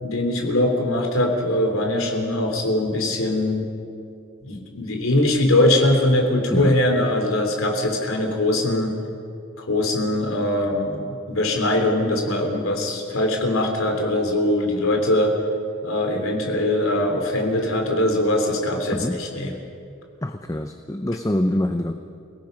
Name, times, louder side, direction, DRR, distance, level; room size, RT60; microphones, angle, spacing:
voice 1, 0.0-3.7 4.4-8.9 9.6-15.4 15.8-19.5, left 1 dB, 85° left, 3 dB, 3.4 m, -22 dB
voice 2, 20.2-21.9, left 1 dB, 15° left, 6 dB, 0.7 m, -25 dB
28.5 x 18.0 x 5.4 m, 2.6 s
head